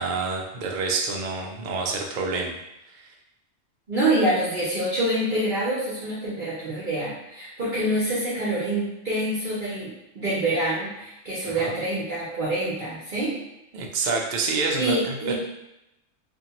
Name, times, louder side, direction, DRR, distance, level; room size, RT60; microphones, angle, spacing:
voice 1, 0.0-2.6 2.9-3.1 11.5-11.7 13.7-15.3, right 4 dB, 80° right, 0 dB, 0.4 m, -28 dB
voice 2, 3.9-13.3 14.8-15.3, right 1 dB, 50° right, -9 dB, 0.7 m, -26 dB
2.6 x 2.2 x 2.8 m, 0.89 s
omnidirectional pair, 1.3 m